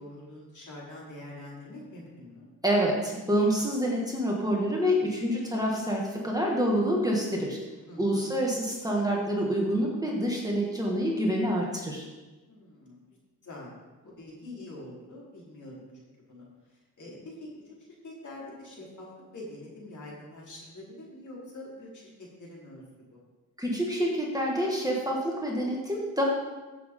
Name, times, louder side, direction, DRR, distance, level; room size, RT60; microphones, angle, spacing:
voice 1, 0.0-2.4 7.9-8.3 12.5-13.0 13.4-13.7 14.0-16.5 17.0-17.7 18.0-19.1 19.3-22.8 23.1-23.2, left 1 dB, 50° left, -5 dB, 4.2 m, -45 dB
voice 2, 2.6-7.6 8.0-12.0 23.6-26.2, equal, 10° right, -3 dB, 2.1 m, -27 dB
15.5 x 7.3 x 3.9 m, 1.2 s
cardioid pair, 90°, 38 cm